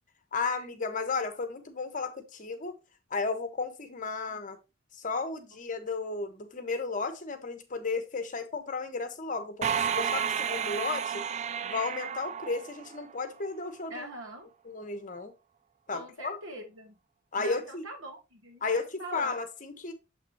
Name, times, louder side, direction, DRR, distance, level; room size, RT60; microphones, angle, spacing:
voice 1, 0.3-2.8 3.1-4.6 5.0-11.2 11.6-14.1 14.6-15.3 15.9-16.4 17.3-17.8 18.6-19.9, left 4 dB, 40° left, 1.1 m, -34 dB
sound 1, 9.6-13.3, right 7 dB, 35° right, 0.3 m, -31 dB
voice 2, 13.9-14.5 15.9-17.0 17.4-19.3, right 1 dB, 85° right, 2.6 m, -44 dB
7.2 x 5.9 x 2.8 m
head